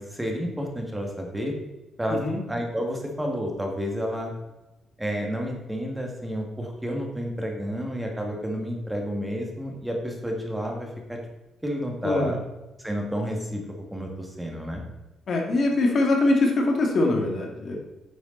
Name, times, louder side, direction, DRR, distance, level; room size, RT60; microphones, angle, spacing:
voice 1, 0.0-1.6 2.0-2.2 2.5-4.3 5.0-11.2 11.6-12.4 12.8-14.8, equal, 10° right, 1 dB, 1.9 m, -30 dB
voice 2, 15.3-17.8, left 2 dB, 55° left, 1 dB, 2.1 m, -23 dB
9.5 x 6.8 x 4.0 m, 1.1 s
cardioid pair, 90°, 0 cm